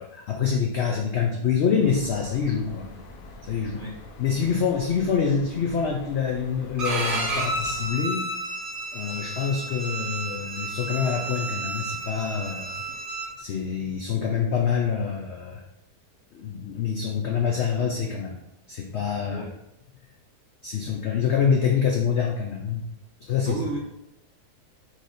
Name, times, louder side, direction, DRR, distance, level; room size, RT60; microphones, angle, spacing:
voice 1, 0.0-2.9 3.4-3.8 4.2-8.3 8.9-12.8 13.4-15.6 16.3-18.4 18.7-19.5 20.6-22.8 23.2-23.6, left 6 dB, 85° left, 1 dB, 0.6 m, -26 dB
sound 1, 1.8-8.0, left 2 dB, 65° left, 1.0 m, -44 dB
Bowed string instrument, 6.8-13.3, right 2 dB, 40° right, 0.9 m, -31 dB
voice 2, 23.5-23.8, right 2 dB, 80° right, -2 dB, 0.4 m, -32 dB
4.1 x 3.2 x 3.9 m, 0.88 s
omnidirectional pair, 1.8 m